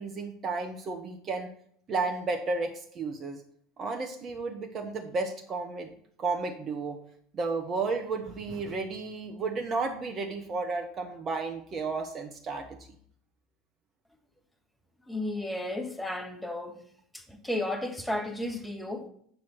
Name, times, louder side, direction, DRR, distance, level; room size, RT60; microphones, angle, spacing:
voice 1, 0.0-1.5 1.9-3.4 3.8-5.9 6.2-7.0 7.3-12.7, right 3 dB, 35° right, 1.1 m, -32 dB
voice 2, 15.1-16.8 17.1-19.1, left 1 dB, 5° left, 1.5 m, -33 dB
8.1 x 6.2 x 4.3 m
figure-of-eight pair, 75°, 0 cm